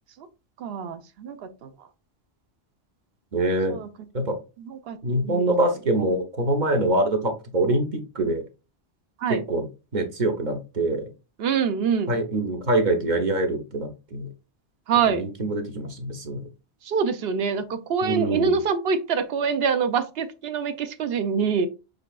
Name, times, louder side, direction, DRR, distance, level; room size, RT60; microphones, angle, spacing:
voice 1, 0.6-1.7 3.7-3.9 4.9-5.0 5.2-5.5 9.2-9.4 11.4-12.1 14.9-15.2 16.9-21.7, right 6 dB, 65° right, 0.9 m, -25 dB
voice 2, 3.3-3.8 4.1-4.4 5.0-8.4 9.3-9.7 9.9-11.1 12.1-14.3 15.1-16.5 18.0-18.6, right 1 dB, 45° right, 0.9 m, -24 dB
6.7 x 3.3 x 2.4 m
omnidirectional pair, 1.1 m